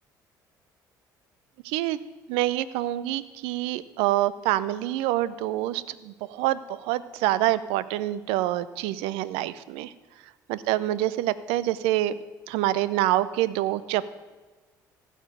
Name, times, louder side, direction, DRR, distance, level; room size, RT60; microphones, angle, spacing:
voice 1, 1.6-2.0 2.3-9.9 10.5-12.2 12.5-14.1, right 14 dB, 70° right, 17 dB, 0.5 m, -26 dB
15.5 x 6.6 x 4.9 m, 1.3 s
hypercardioid pair, 55°, 10 cm